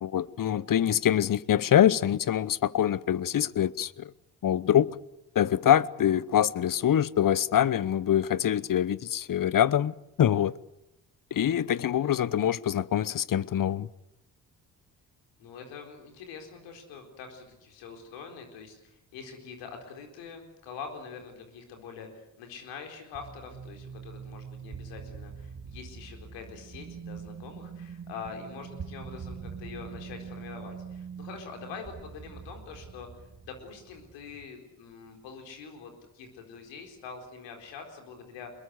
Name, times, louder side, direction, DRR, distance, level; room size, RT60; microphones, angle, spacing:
voice 1, 0.0-4.1 4.4-5.0 5.3-10.6 11.3-13.9, left 10 dB, 50° left, 1.0 m, -25 dB
voice 2, 11.9-12.2 15.4-38.5, left 5 dB, 85° left, 4.3 m, -44 dB
sound 1, 23.1-34.5, right 6 dB, 45° right, 2.7 m, -43 dB
23.0 x 21.5 x 8.2 m
hypercardioid pair, 50°, 42 cm